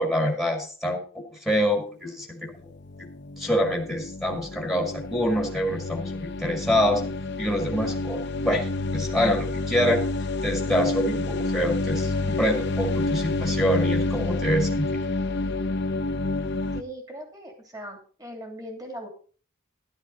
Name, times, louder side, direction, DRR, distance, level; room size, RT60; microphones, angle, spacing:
voice 1, 0.0-2.5 3.4-7.0 7.4-10.0 10.4-14.9, equal, ahead, 1 dB, 2.0 m, -26 dB
sound 1, 2.6-16.8, left 2 dB, 50° left, 0.9 m, -29 dB
voice 2, 16.7-19.1, equal, 15° right, 3 dB, 2.8 m, -39 dB
12.0 x 11.5 x 4.0 m, 0.41 s
head